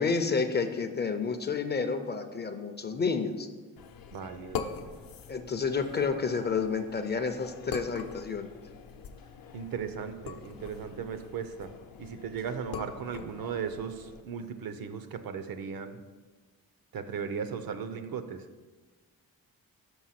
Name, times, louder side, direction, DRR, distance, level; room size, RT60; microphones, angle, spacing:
voice 1, 0.0-3.5 5.3-8.5, left 5 dB, 30° left, 7 dB, 0.4 m, -30 dB
sound 1, 3.8-14.2, left 6 dB, 70° left, 0.6 m, -43 dB
voice 2, 4.1-4.7 9.5-11.7 12.0-16.0 16.9-18.4, right 6 dB, 70° right, 10 dB, 0.7 m, -37 dB
6.3 x 5.5 x 5.7 m, 1.3 s
wide cardioid pair, 170°, 36 cm